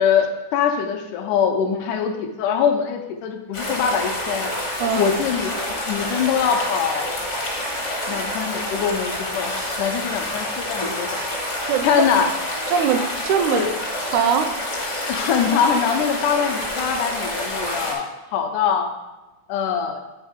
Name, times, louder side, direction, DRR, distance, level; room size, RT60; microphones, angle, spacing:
voice 1, 0.0-4.5 4.9-5.5 5.9-7.1 8.1-11.1 11.8-12.3 13.5-13.7 15.1-18.9 19.5-20.0, left 7 dB, 85° left, 5 dB, 2.2 m, -23 dB
sound 1, 3.5-17.9, left 1 dB, 55° left, 0.8 m, -28 dB
voice 2, 4.8-5.1 11.6-12.1 12.7-13.6 14.0-14.5, right 7 dB, 80° right, 8 dB, 1.8 m, -21 dB
Speech, 11.1-11.9 13.2-13.5 13.7-14.1 14.8-15.6, equal, 55° right, 0.5 m, -43 dB
9.1 x 3.6 x 5.0 m, 1.1 s
omnidirectional pair, 3.6 m